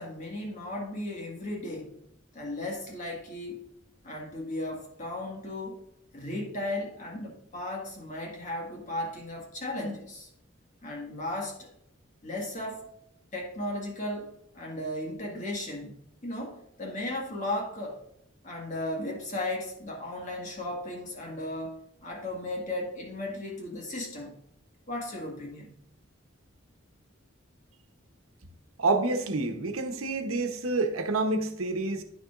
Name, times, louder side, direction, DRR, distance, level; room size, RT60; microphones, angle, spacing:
voice 1, 0.0-2.0 2.3-3.6 4.0-5.8 6.1-10.3 10.8-11.7 12.2-12.9 13.3-18.0 18.4-24.4 24.9-25.8, left 1 dB, 35° left, 1.7 m, -36 dB
voice 2, 28.8-32.0, right 3 dB, 90° right, 0.9 m, -28 dB
9.5 x 6.8 x 2.5 m
head